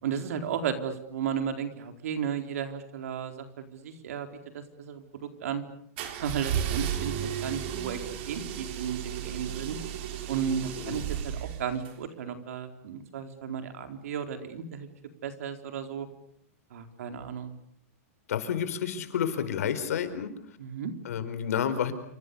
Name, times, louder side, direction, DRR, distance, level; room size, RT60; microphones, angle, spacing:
voice 1, 0.0-4.3 4.5-5.6 6.1-8.0 8.3-9.8 10.3-14.9 15.2-16.1 16.7-17.5 20.6-20.9, right 8 dB, 70° right, 7 dB, 4.3 m, -34 dB
sound 1, 6.0-11.9, right 9 dB, 50° right, 3.9 m, -34 dB
voice 2, 18.3-20.6 21.0-21.9, left 8 dB, 80° left, 10 dB, 4.7 m, -30 dB
28.0 x 26.0 x 7.0 m, 0.65 s
supercardioid pair, 160°, 8 cm